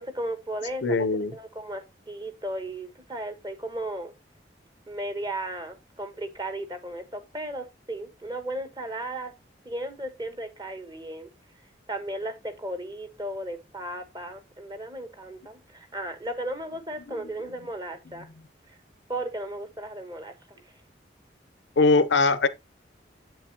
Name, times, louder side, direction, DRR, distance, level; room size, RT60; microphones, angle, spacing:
voice 1, 0.0-1.1 1.3-4.1 4.9-9.3 9.6-11.3 11.9-18.3 18.7-18.8 19.1-20.3, right 1 dB, 25° right, 1.1 m, -35 dB
voice 2, 0.8-1.3 17.1-17.2 21.8-22.5, left 3 dB, 90° left, 0.7 m, -21 dB
7.9 x 7.0 x 2.8 m
head